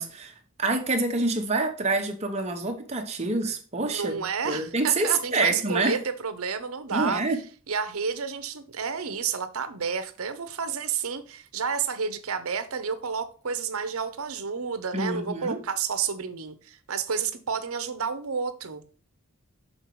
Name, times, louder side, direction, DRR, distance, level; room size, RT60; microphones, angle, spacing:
voice 1, 0.0-6.0 6.9-7.4 14.9-15.6, right 3 dB, 30° right, 1.0 m, -27 dB
voice 2, 3.8-7.2 7.7-18.8, right 6 dB, 70° right, 0.8 m, -30 dB
6.5 x 4.0 x 4.7 m
head